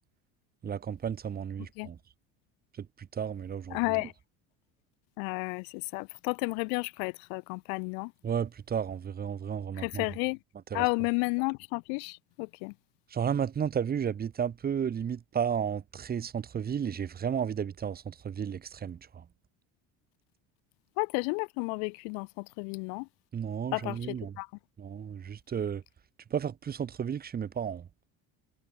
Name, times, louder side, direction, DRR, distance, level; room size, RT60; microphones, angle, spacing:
voice 1, 0.6-2.0 2.8-4.0 8.2-10.1 10.7-10.8 13.1-19.2 23.3-24.3 24.8-25.8 26.3-27.9, right 8 dB, 30° right, 4.4 m, -33 dB
voice 2, 3.7-4.1 5.2-8.1 9.8-10.4 10.7-12.7 21.0-23.1 23.7-24.5, left 40 dB or more, 80° left, 2.1 m, -32 dB
cardioid pair, 150°, 33 cm